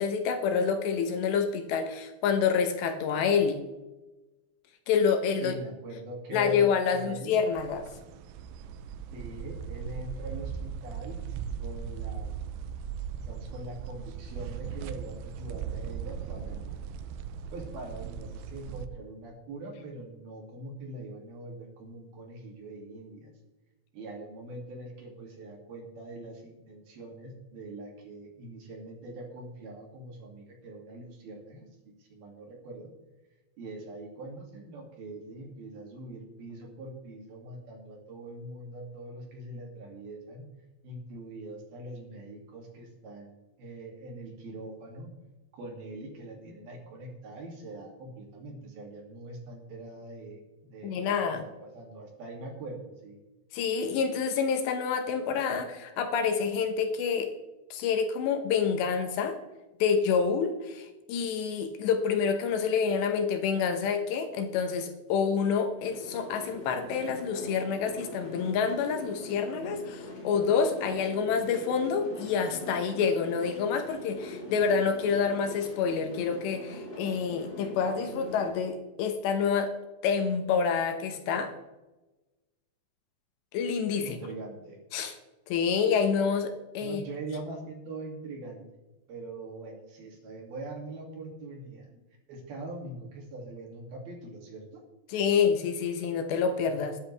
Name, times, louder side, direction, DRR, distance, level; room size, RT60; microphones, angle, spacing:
voice 1, 0.0-3.6 4.9-5.5 6.3-7.9 50.8-51.4 53.5-57.3 57.7-59.4 59.8-79.7 80.0-81.5 83.5-84.2 84.9-85.1 85.5-87.0 95.1-97.0, left 6 dB, 75° left, 7 dB, 3.0 m, -27 dB
voice 2, 5.4-7.3 9.1-11.2 11.6-12.3 13.1-16.7 17.5-23.3 23.9-32.9 33.6-40.4 40.8-45.1 45.5-53.2 84.0-84.8 86.8-88.6 89.1-91.9 92.3-94.8, right 2 dB, 55° right, 0 dB, 4.2 m, -43 dB
sound 1, 7.5-18.9, right 7 dB, 85° right, 3.2 m, -38 dB
sound 2, 65.8-78.5, left 2 dB, 25° left, 3.3 m, -42 dB
20.5 x 10.0 x 3.4 m, 1.1 s
omnidirectional pair, 5.4 m